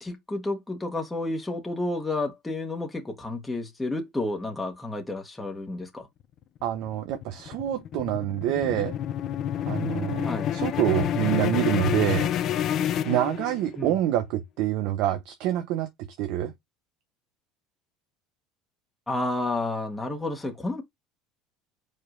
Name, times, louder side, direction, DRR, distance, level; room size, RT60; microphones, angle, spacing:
voice 1, 0.0-6.1 10.2-10.5 13.8-13.9 19.1-20.8, left 2 dB, 10° left, 1.2 m, -31 dB
sound 1, 6.6-13.9, left 10 dB, 50° left, 0.6 m, -28 dB
voice 2, 6.6-8.9 9.6-12.3 13.0-16.5, right 12 dB, 70° right, 0.7 m, -27 dB
4.9 x 4.3 x 2.5 m
supercardioid pair, 110°, 0 cm